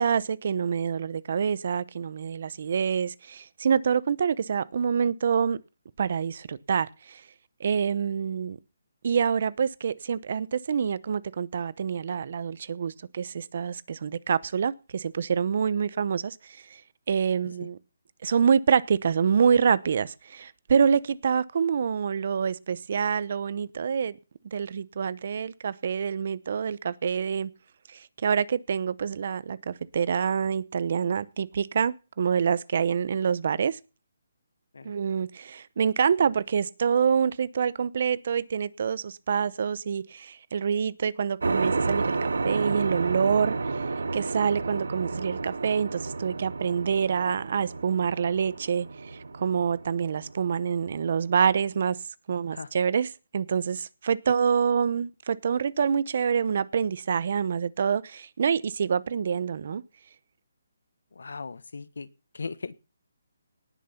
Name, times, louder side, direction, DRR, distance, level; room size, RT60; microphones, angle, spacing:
voice 1, 0.0-5.6 6.0-7.2 7.6-8.6 9.0-16.8 17.1-17.8 18.2-24.2 24.5-27.5 27.9-33.8 34.8-43.6 44.1-52.0 52.3-59.8, right 7 dB, 45° right, 0.8 m, -26 dB
sound 1, 41.4-51.5, right 3 dB, 90° right, 1.5 m, -31 dB
voice 2, 61.1-62.1 62.3-62.8, left 4 dB, 80° left, 1.3 m, -38 dB
18.5 x 6.8 x 5.7 m
hypercardioid pair, 170°, 0 cm